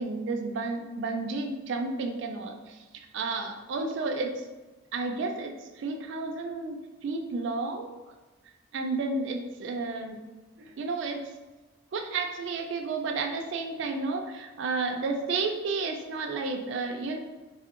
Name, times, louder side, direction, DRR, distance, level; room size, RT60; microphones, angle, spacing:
voice 1, 0.0-2.8 3.1-4.3 4.9-5.5 5.8-7.9 8.7-10.2 10.6-11.2 11.9-17.2, right 3 dB, 55° right, 4 dB, 0.3 m, -31 dB
3.5 x 2.2 x 2.4 m, 1.2 s
head